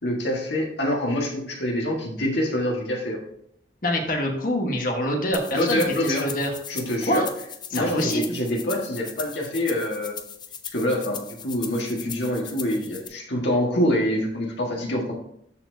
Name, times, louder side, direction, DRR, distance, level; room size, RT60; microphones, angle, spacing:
voice 1, 0.0-3.2 5.5-6.2 6.7-7.2 7.7-10.1 10.7-15.1, left 1 dB, 70° left, -1 dB, 1.5 m, -25 dB
voice 2, 3.8-6.5 7.1-7.3 7.7-8.2, left 1 dB, 50° left, 2 dB, 1.3 m, -25 dB
sound 1, 5.3-13.1, left 8 dB, 25° left, 0.5 m, -39 dB
13.0 x 4.3 x 2.7 m, 0.72 s
head